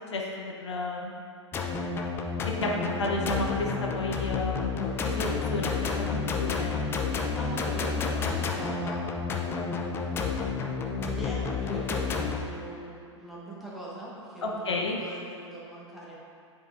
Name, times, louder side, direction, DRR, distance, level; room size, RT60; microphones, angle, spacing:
voice 1, 0.1-1.1 2.4-4.7 5.0-6.7 14.4-15.0, left 2 dB, 65° left, -2 dB, 0.9 m, -32 dB
sound 1, 1.5-12.4, left 5 dB, 15° left, 0.4 m, -30 dB
voice 2, 7.4-10.1 10.9-16.2, right 1 dB, ahead, -8 dB, 1.3 m, -41 dB
9.7 x 4.7 x 2.5 m, 2.4 s
figure-of-eight pair, 100°, 16 cm